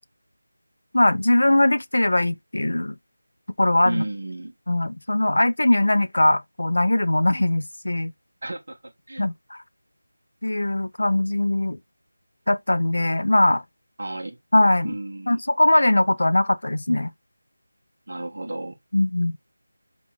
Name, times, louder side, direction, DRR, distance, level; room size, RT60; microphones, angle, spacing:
voice 1, 0.9-3.0 3.6-4.0 4.7-8.1 9.2-9.6 10.4-11.8 12.5-13.6 14.5-14.9 15.3-17.1 18.9-19.3, left 1 dB, 70° left, 0.4 m, -20 dB
voice 2, 3.8-4.5 8.4-9.2 14.0-14.4 14.8-15.4 18.1-18.8, right 1 dB, 50° right, 1.0 m, -32 dB
3.5 x 2.4 x 3.1 m
figure-of-eight pair, 180°, 0 cm